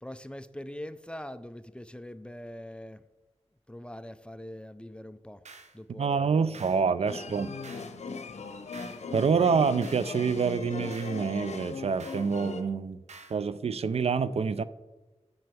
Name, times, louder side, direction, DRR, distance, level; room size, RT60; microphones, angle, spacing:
voice 1, 0.0-3.1 3.7-5.4 5.7-7.1, left 1 dB, 10° left, 13 dB, 0.4 m, -43 dB
sound 1, 5.4-5.8 6.5-6.9 7.6-8.0 8.7-9.0 9.8-10.1 10.9-11.2 12.0-12.3 13.1-13.4, right 4 dB, 80° right, 1.0 m, -49 dB
voice 2, 5.9-7.5 9.1-13.0 13.3-14.6, right 5 dB, 65° right, 15 dB, 0.4 m, -27 dB
sound 2, 7.1-12.6, left 4 dB, 75° left, 0.8 m, -39 dB
7.8 x 5.7 x 6.8 m, 1.1 s
wide cardioid pair, 90°, 11 cm